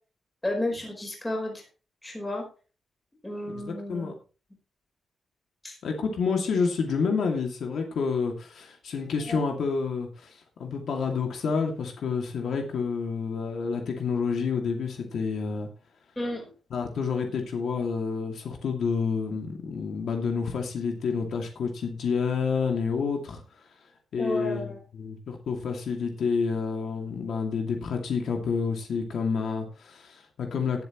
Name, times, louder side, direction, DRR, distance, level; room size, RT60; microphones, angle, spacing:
voice 1, 0.4-1.6 2.0-2.4 3.2-4.1 5.6-5.8 9.3-9.4 16.2-16.5 24.2-24.8, left 1 dB, 10° left, 1 dB, 4.6 m, -32 dB
voice 2, 3.5-4.1 5.8-15.7 16.7-23.4 24.1-30.8, left 5 dB, 65° left, 2 dB, 2.4 m, -29 dB
18.5 x 7.9 x 3.1 m, 0.34 s
wide cardioid pair, 175°, 0 cm